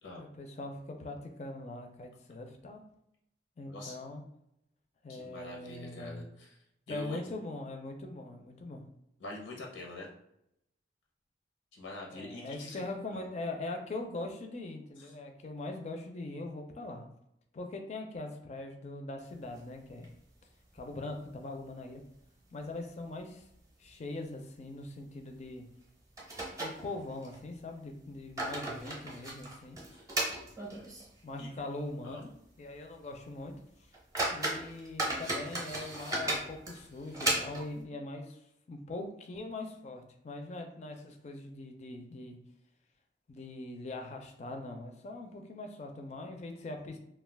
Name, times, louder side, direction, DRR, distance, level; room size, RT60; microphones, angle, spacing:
voice 1, 0.2-2.8 3.6-4.2 5.0-6.3 6.9-8.8 12.1-17.0 17.5-20.1 20.7-22.0 22.5-23.4 23.8-25.6 26.6-29.8 31.2-32.3 32.6-33.6 34.3-38.4 38.7-42.4 43.3-47.0, left 2 dB, 35° left, 4 dB, 0.4 m, -41 dB
voice 2, 3.7-4.0 5.1-6.6 6.9-7.2 9.2-10.1 11.7-12.8 13.1-13.3 15.0-15.1 29.9-30.0 31.4-31.5 32.0-32.2 35.8-35.9, left 2 dB, 90° left, -1 dB, 0.7 m, -44 dB
sound 1, 19.4-20.4 20.7-20.8 21.2-21.3 21.9-22.4 22.7-22.8 23.4-23.6 23.9-24.1 25.4-25.5 26.2-27.4 28.0-31.2 31.6-31.7 32.2-32.3 32.8-32.9 33.5-33.6 33.9-37.8, right 2 dB, 20° right, 0.6 m, -36 dB
2.3 x 2.3 x 3.3 m, 0.79 s
head